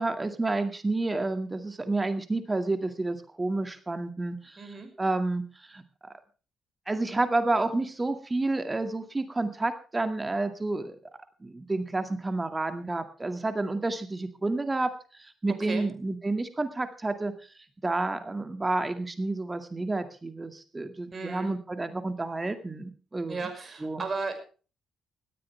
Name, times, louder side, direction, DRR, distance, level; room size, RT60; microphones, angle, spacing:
voice 1, 0.0-6.1 6.9-11.0 11.4-17.3 17.8-23.5 23.8-24.0, right 2 dB, 25° right, 8 dB, 2.1 m, -30 dB
voice 2, 4.6-4.9 15.5-15.9 21.1-21.5 23.3-24.4, right 4 dB, 40° right, 6 dB, 5.7 m, -35 dB
17.5 x 14.5 x 3.4 m, 0.37 s
hypercardioid pair, 45°, 0 cm